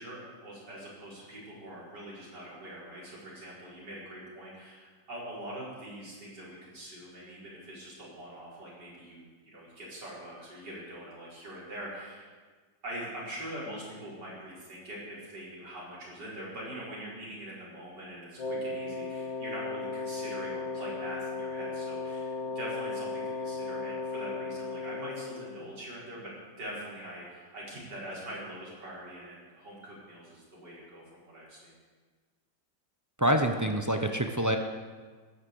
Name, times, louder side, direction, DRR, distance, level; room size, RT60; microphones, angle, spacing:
voice 1, 0.0-9.2 9.5-12.3 12.8-31.7, right 1 dB, 65° right, -6 dB, 5.5 m, -43 dB
Wind instrument woodwind instrument, 18.4-25.7, left 3 dB, 80° left, 2.6 m, -36 dB
voice 2, 33.2-34.6, right 1 dB, 30° right, 5 dB, 0.3 m, -26 dB
14.0 x 10.0 x 7.9 m, 1.5 s
omnidirectional pair, 1.9 m